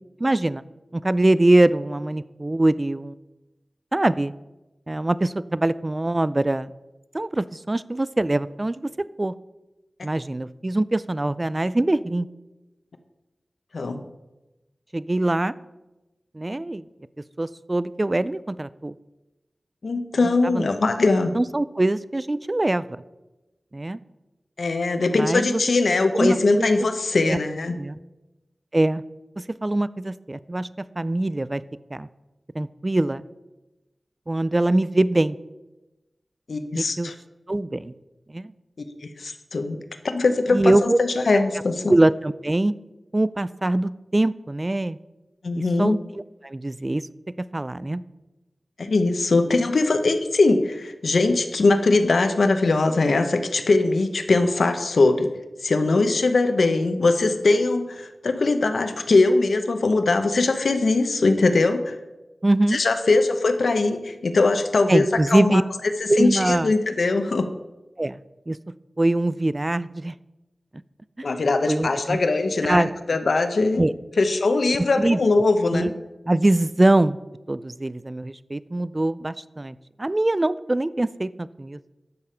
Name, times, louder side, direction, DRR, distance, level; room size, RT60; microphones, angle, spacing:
voice 1, 0.2-0.6 0.9-3.1 3.9-4.3 4.9-6.7 7.1-8.9 9.2-9.3 10.0-12.3 14.9-15.5 16.3-16.8 17.4-18.9 20.4-20.7 21.3-23.0 23.7-24.0 25.1-25.6 26.1-26.7 27.2-27.4 27.8-28.0 28.7-29.0 29.4-31.6 31.9-32.1 32.5-33.2 34.3-35.4 36.8-37.1 37.5-37.9 38.3-38.5 40.5-41.0 41.9-42.7 43.1-45.0 45.8-45.9 46.4-47.1 47.4-48.0 62.4-62.8 64.9-65.6 66.1-66.7 68.0-68.2 68.5-68.6 69.0-70.1 71.2-71.3 71.7-72.2 72.7-72.9 73.8-73.9 75.0-75.4 75.7-75.9 76.3-77.2 77.5-81.8, right 1 dB, 30° right, 17 dB, 0.3 m, -23 dB
voice 2, 19.8-21.3 24.6-27.8 36.5-37.1 39.0-39.8 40.0-41.9 45.4-46.0 48.8-55.3 55.6-61.9 62.7-65.6 66.2-67.5 71.2-73.8 74.2-75.9, left 3 dB, 85° left, 8 dB, 0.8 m, -21 dB
10.5 x 6.7 x 5.6 m, 1.0 s
wide cardioid pair, 80°, 0 cm